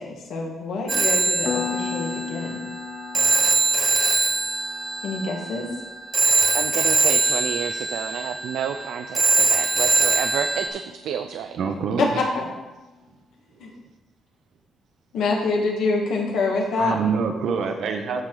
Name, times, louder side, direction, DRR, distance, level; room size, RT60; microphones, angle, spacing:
voice 1, 0.0-2.6 5.0-5.7 12.0-12.1 12.3-12.4 13.6-13.7 15.1-17.0, left 3 dB, 75° left, -1 dB, 1.5 m, -26 dB
Telephone, 0.9-10.7, right 3 dB, 25° right, 0.7 m, -22 dB
Piano, 1.5-11.8, left 6 dB, 50° left, 0.6 m, -37 dB
voice 2, 6.5-11.6 11.9-12.0, right 8 dB, 85° right, 7 dB, 0.4 m, -30 dB
voice 3, 11.6-12.1 16.8-18.2, right 6 dB, 60° right, 5 dB, 0.8 m, -25 dB
14.0 x 4.8 x 3.8 m, 1.1 s
cardioid pair, 170°, 0 cm